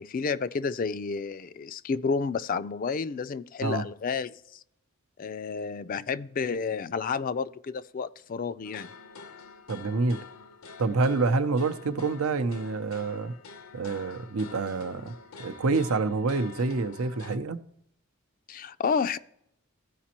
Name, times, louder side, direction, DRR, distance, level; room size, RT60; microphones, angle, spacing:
voice 1, 0.0-4.6 5.2-8.9 18.5-19.2, left 5 dB, 40° left, 0.3 m, -31 dB
sound 1, 8.6-17.4, left 4 dB, 85° left, 0.7 m, -47 dB
voice 2, 9.7-10.2 10.8-13.3 13.7-15.1 15.4-17.6, right 3 dB, 90° right, 0.7 m, -27 dB
15.0 x 5.1 x 2.9 m
head